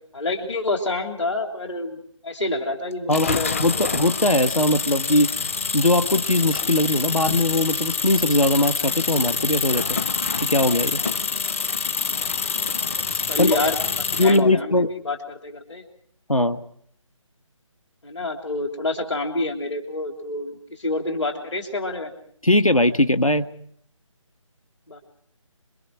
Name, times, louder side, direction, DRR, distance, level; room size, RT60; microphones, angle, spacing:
voice 1, 0.1-3.9 13.3-13.8 14.2-15.8 18.0-22.1 24.9-25.0, left 2 dB, 60° left, 3 dB, 3.4 m, -28 dB
voice 2, 3.1-5.3 5.7-10.0 10.4-11.0 13.4-13.6 14.2-14.9 16.3-16.6 22.4-23.5, left 1 dB, 85° left, 9 dB, 1.4 m, -20 dB
sound 1, 3.1-14.4, left 5 dB, 25° left, 0.8 m, -26 dB
29.5 x 22.0 x 4.8 m, 0.65 s
figure-of-eight pair, 155°, 17 cm